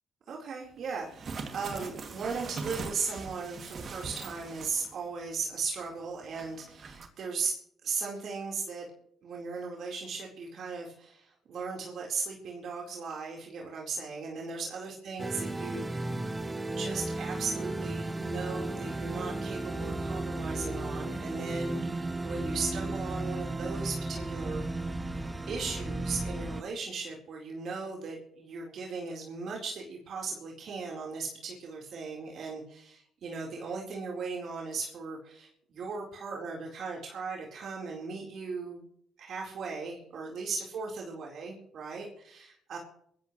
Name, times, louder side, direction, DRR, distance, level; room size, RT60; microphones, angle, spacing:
voice 1, 0.3-8.9 9.2-16.1 16.8-24.7 25.5-38.8 39.2-42.8, right 4 dB, 65° right, -1 dB, 4.3 m, -37 dB
sound 1, 1.0-5.1 5.4-5.5 6.3-7.1, right 4 dB, 50° right, 2.6 m, -41 dB
sound 2, 15.2-26.6, right 2 dB, 15° right, 1.1 m, -34 dB
22.0 x 15.5 x 3.2 m, 0.67 s
cardioid pair, 90°, 0 cm